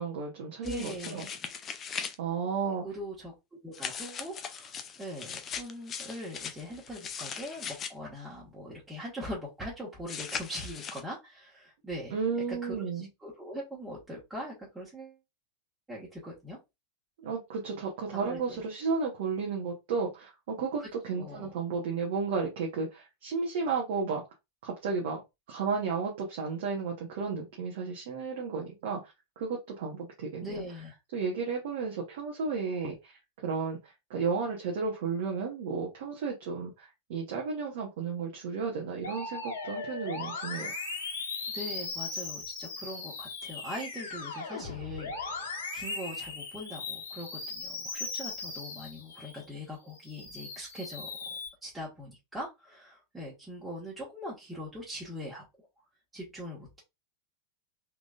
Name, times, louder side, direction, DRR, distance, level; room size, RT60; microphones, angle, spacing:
voice 1, 0.0-1.2 2.2-2.8 12.1-13.1 17.2-24.2 24.6-25.2 25.5-29.0 29.4-30.6 31.1-33.8 34.1-40.7, right 5 dB, 55° right, 0 dB, 1.1 m, -33 dB
sound 1, 0.6-2.2 3.7-7.9 10.1-11.0, left 7 dB, 25° left, 0.5 m, -39 dB
voice 2, 0.6-1.5 2.8-12.1 12.5-15.2 15.9-16.6 18.1-18.6 20.8-21.5 30.4-30.9 41.5-55.4 56.1-56.8, equal, 10° right, -6 dB, 1.5 m, -41 dB
Musical instrument, 39.0-49.5 49.9-51.5, left 4 dB, 65° left, 1.2 m, -38 dB
3.8 x 3.5 x 2.4 m, 0.22 s
figure-of-eight pair, 90°, 0 cm